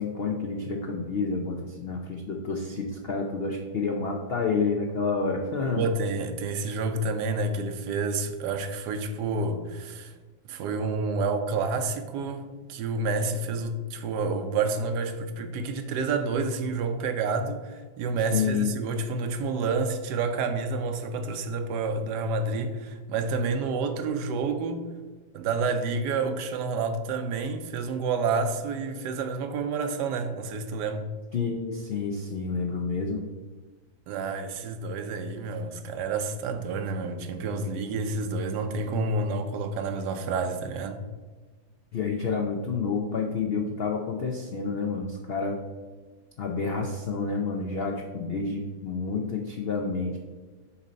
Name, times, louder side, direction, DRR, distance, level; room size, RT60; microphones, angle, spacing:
voice 1, 0.0-5.8 18.3-18.7 31.3-33.2 41.9-45.6 46.4-50.2, left 4 dB, 75° left, 0.5 m, -29 dB
voice 2, 5.7-10.1 10.5-24.9 25.3-31.1 34.1-41.0, right 3 dB, 90° right, 1.2 m, -29 dB
7.1 x 2.7 x 5.1 m
omnidirectional pair, 1.7 m